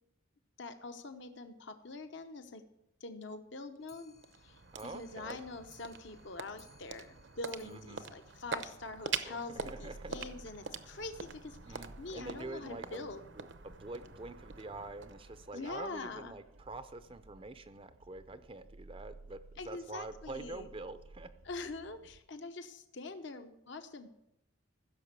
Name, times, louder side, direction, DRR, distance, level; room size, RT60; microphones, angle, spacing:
voice 1, 0.6-2.6 3.0-4.1 4.4-13.2 15.5-16.3 19.6-20.7 21.4-24.1, left 3 dB, 60° left, 8 dB, 0.9 m, -44 dB
Clock, 3.8-9.3 9.6-9.7 10.0-10.1 10.4-10.5 10.8-10.9 11.6-11.7 12.4-12.5 13.2-13.3, left 2 dB, 15° left, 0.6 m, -64 dB
sound 1, 3.8-16.2, right 6 dB, 60° right, 0.7 m, -45 dB
voice 2, 4.7-5.4 7.6-8.0 9.2-10.2 11.7-13.1 13.4-19.4 19.6-21.3, right 2 dB, 25° right, 11 dB, 0.5 m, -46 dB
sound 2, 9.6-22.2, right 2 dB, 90° right, 0.7 m, -56 dB
15.0 x 6.7 x 6.8 m, 0.83 s
head